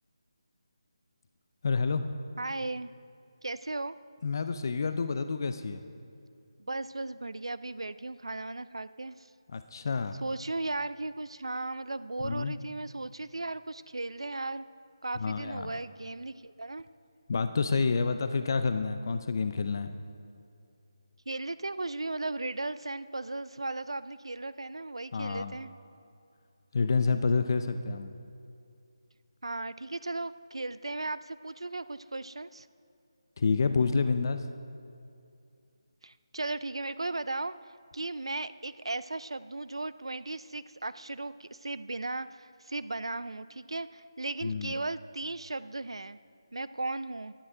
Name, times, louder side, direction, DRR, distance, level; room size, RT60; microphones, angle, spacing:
voice 1, 1.6-2.0 4.2-5.8 9.5-10.2 12.2-12.5 15.2-15.6 17.3-20.0 25.1-25.5 26.7-28.1 33.4-34.4 44.4-44.7, left 4 dB, 45° left, 9 dB, 0.4 m, -28 dB
voice 2, 2.4-2.9 3.4-3.9 6.6-9.3 10.2-14.6 15.0-16.9 21.3-25.7 29.4-32.7 36.0-46.2 46.5-47.3, right 2 dB, 90° right, 15 dB, 0.3 m, -36 dB
11.5 x 9.4 x 4.9 m, 2.5 s
figure-of-eight pair, 160°, 3 cm